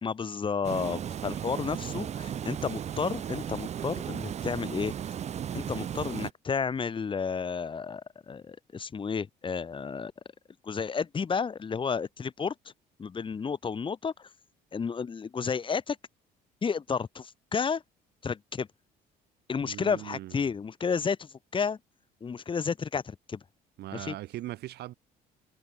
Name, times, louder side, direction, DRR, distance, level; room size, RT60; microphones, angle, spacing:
voice 1, 0.0-4.9 5.5-10.1 10.6-12.5 13.0-14.3 14.7-16.0 16.6-17.8 18.2-18.7 19.5-21.8 22.2-23.4 23.9-24.1, left 6 dB, 30° left, 1.5 m, -32 dB
Water, 0.6-6.3, right 9 dB, 40° right, 0.8 m, -35 dB
voice 2, 19.6-20.4 23.8-24.9, right 15 dB, 75° right, 7.8 m, -40 dB
cardioid pair, 110°, 17 cm